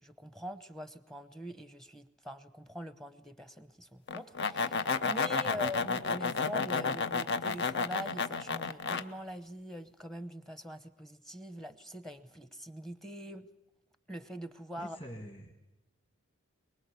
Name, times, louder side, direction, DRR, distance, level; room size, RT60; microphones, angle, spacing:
voice 1, 0.0-13.5 14.1-15.0, equal, ahead, 12 dB, 0.8 m, -44 dB
sound 1, 4.1-9.0, left 4 dB, 55° left, 0.9 m, -31 dB
voice 2, 14.8-15.5, equal, 25° left, 2 dB, 2.0 m, -45 dB
23.5 x 21.5 x 8.3 m, 0.95 s
head